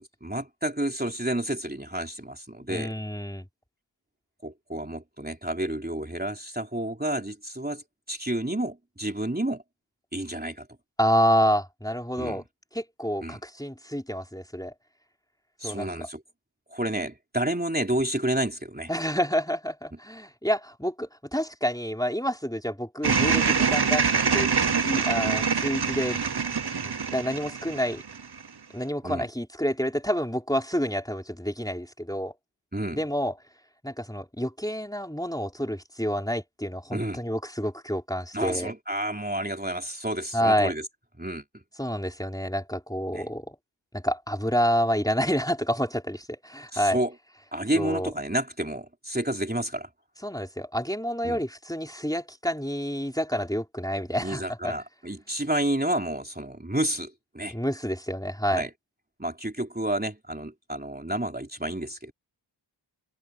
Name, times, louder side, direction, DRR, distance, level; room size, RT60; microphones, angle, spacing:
voice 1, 0.0-2.9 4.4-9.6 10.1-10.7 12.2-12.4 13.2-13.4 15.6-16.2 16.7-18.9 29.0-29.3 32.7-33.0 36.9-37.2 38.3-40.8 41.2-41.6 43.1-43.3 46.7-47.1 47.5-49.9 51.2-51.4 54.2-57.5 58.5-58.7 59.2-62.1, right 1 dB, 20° right, 3.5 m, -30 dB
voice 2, 2.7-3.5 11.0-12.4 12.7-14.7 15.6-16.1 18.9-24.5 24.8-26.2 26.8-28.0 28.7-32.3 32.9-33.3 33.8-38.7 40.3-40.7 41.8-43.6 43.9-47.0 47.8-48.1 50.2-54.7 57.5-58.6, equal, 10° left, 4.6 m, -28 dB
sound 1, 23.0-28.5, right 5 dB, 60° right, 1.0 m, -25 dB
wide cardioid pair, 45°, 45 cm